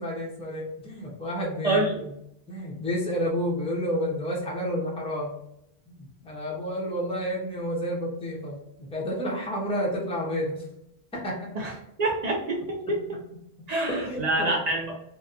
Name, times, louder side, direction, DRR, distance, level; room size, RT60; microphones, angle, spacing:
voice 1, 0.0-2.1 2.5-5.3 5.9-10.6 11.1-11.5 12.6-13.2 13.6-14.6, equal, 10° left, -3 dB, 0.4 m, -31 dB
voice 2, 1.6-2.0 11.6-11.7 12.0-13.2 13.7-14.9, right 2 dB, 60° right, -2 dB, 0.4 m, -26 dB
2.7 x 2.1 x 2.4 m, 0.80 s
omnidirectional pair, 1.2 m